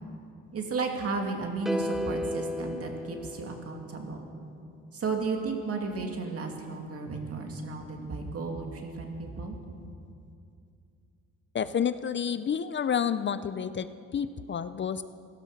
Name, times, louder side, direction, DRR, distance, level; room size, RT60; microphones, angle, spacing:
voice 1, 0.5-4.3 4.9-9.6, right 4 dB, 50° right, 3 dB, 2.4 m, -33 dB
sound 1, 1.7-4.0, left 1 dB, ahead, 0.7 m, -33 dB
voice 2, 11.5-15.0, left 7 dB, 40° left, 13 dB, 0.5 m, -30 dB
16.5 x 12.5 x 6.6 m, 2.5 s
cardioid pair, 90°, 30 cm